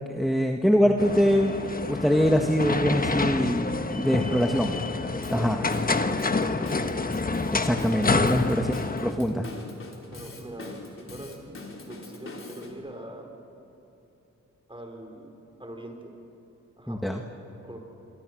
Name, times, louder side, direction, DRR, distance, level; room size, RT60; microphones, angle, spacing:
voice 1, 0.1-4.7 5.3-5.6 7.6-8.7 9.0-9.5 16.9-17.2, equal, ahead, 4 dB, 1.6 m, -23 dB
sound 1, 1.0-9.1, left 3 dB, 30° left, 1.2 m, -28 dB
voice 2, 4.2-4.6 5.2-7.0 10.1-13.3 14.7-15.3 15.6-16.1 16.8-17.8, right 1 dB, 15° right, 2 dB, 4.8 m, -42 dB
Drum kit / Drum, 5.2-12.7, left 3 dB, 45° left, 3.6 m, -43 dB
27.5 x 24.0 x 6.4 m, 3.0 s
cardioid pair, 65°, 30 cm